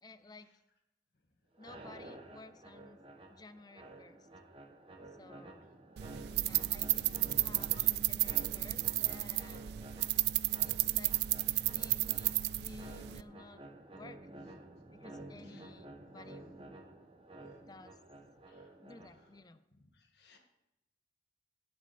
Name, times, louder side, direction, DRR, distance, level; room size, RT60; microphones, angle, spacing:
voice 1, 0.0-0.5 1.6-3.0 3.3-4.3 5.2-5.7 6.4-9.8 10.6-11.3 11.7-13.6 13.9-14.2 14.9-16.5 17.7-18.0 18.8-19.6, left 3 dB, 20° left, 12 dB, 0.5 m, -54 dB
sound 1, 1.5-19.4, right 2 dB, 30° right, 1.1 m, -52 dB
sound 2, 6.0-13.2, right 16 dB, 65° right, 0.3 m, -32 dB
voice 2, 19.9-20.4, left 5 dB, 65° left, 3 dB, 1.9 m, -66 dB
17.0 x 6.1 x 4.2 m, 0.89 s
head